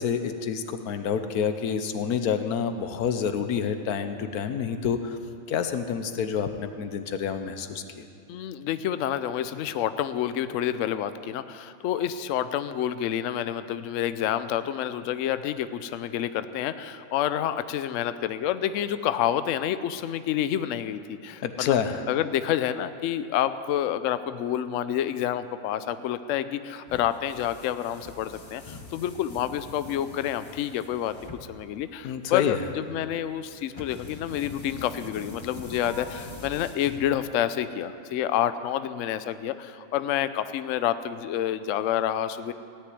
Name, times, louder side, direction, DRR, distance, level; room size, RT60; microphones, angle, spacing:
voice 1, 0.0-5.0 5.5-8.0 21.4-22.0 32.0-32.6, left 7 dB, 90° left, 9 dB, 1.3 m, -28 dB
voice 2, 8.3-21.8 22.1-31.1 31.5-42.5, left 10 dB, 65° left, 12 dB, 0.9 m, -28 dB
sound 1, 26.9-37.5, left 3 dB, 20° left, 0.9 m, -44 dB
16.5 x 6.8 x 9.3 m, 2.4 s
omnidirectional pair, 1.6 m